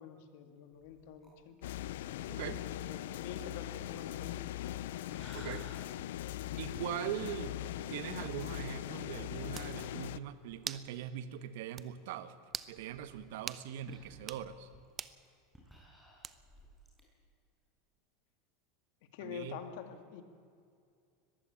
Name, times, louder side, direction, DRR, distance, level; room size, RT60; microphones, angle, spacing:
voice 1, 0.0-1.6 2.6-4.5 19.1-20.2, left 8 dB, 65° left, 8 dB, 2.3 m, -47 dB
sound 1, 0.7-11.0 11.3-11.4 11.7-11.8 12.5-17.0, equal, ahead, 5.3 m, -59 dB
sound 2, 1.6-10.2, left 14 dB, 85° left, 0.5 m, -40 dB
voice 2, 2.3-2.6 5.3-5.7 6.6-12.4 12.7-14.7 19.2-19.6, right 10 dB, 75° right, 12 dB, 1.3 m, -41 dB
sound 3, 9.5-9.7 10.7-10.9 11.3-11.4 11.8-11.9 12.5-12.7 13.5-13.7 14.2-14.4 15.0-15.2 16.2-16.6, right 8 dB, 25° right, 0.7 m, -42 dB
21.0 x 15.0 x 8.9 m, 2.4 s
supercardioid pair, 140°, 0 cm